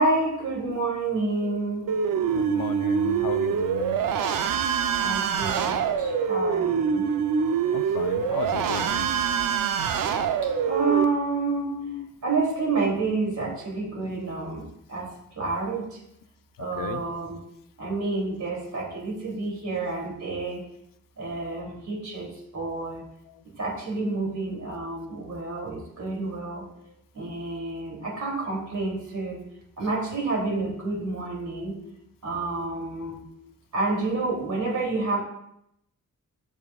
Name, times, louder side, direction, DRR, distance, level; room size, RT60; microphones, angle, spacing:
voice 1, 0.0-1.9 5.0-7.1 10.4-11.7 12.2-15.1 15.4-16.0 16.6-17.4 17.8-20.6 21.2-23.0 23.6-26.6 27.1-29.4 29.8-31.8 32.2-33.2 33.7-35.2, right 3 dB, 60° right, -2 dB, 3.0 m, -29 dB
voice 2, 1.4-4.0 7.2-7.3 7.7-9.1 11.5-12.1 16.6-17.0 26.8-26.9 31.7-31.9 33.0-33.5, left 7 dB, 85° left, 10 dB, 0.6 m, -36 dB
sound 1, 1.9-11.1, right 7 dB, 85° right, 0.6 m, -25 dB
14.0 x 5.5 x 2.4 m, 0.78 s
wide cardioid pair, 105°, 32 cm